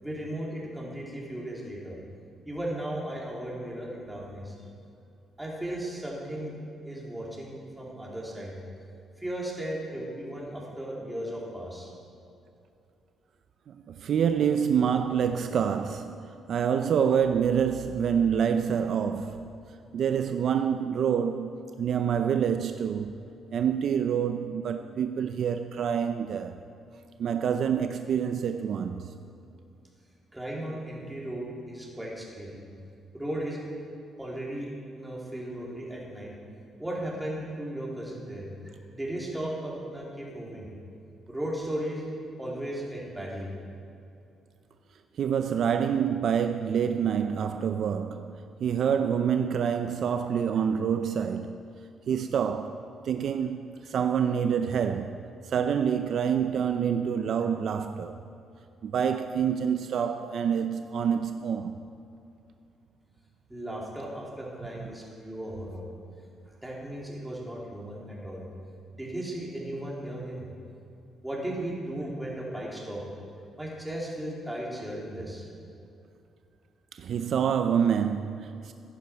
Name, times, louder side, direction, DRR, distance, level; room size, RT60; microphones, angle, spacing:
voice 1, 0.0-2.0 2.4-4.5 5.4-6.6 6.8-8.5 9.2-11.9 30.3-32.6 33.1-33.6 34.2-36.3 36.8-38.4 38.9-40.7 41.3-42.0 42.4-43.5 63.5-65.9 66.6-68.4 68.9-70.5 71.2-73.0 73.6-75.4, right 1 dB, 10° right, 3.5 m, -36 dB
voice 2, 13.7-19.5 19.9-23.1 23.5-26.6 27.2-29.1 45.2-51.5 52.1-58.2 58.8-61.8 64.8-64.9 77.0-78.7, right 7 dB, 65° right, 0.5 m, -27 dB
15.0 x 10.5 x 4.6 m
cardioid pair, 90°, 0 cm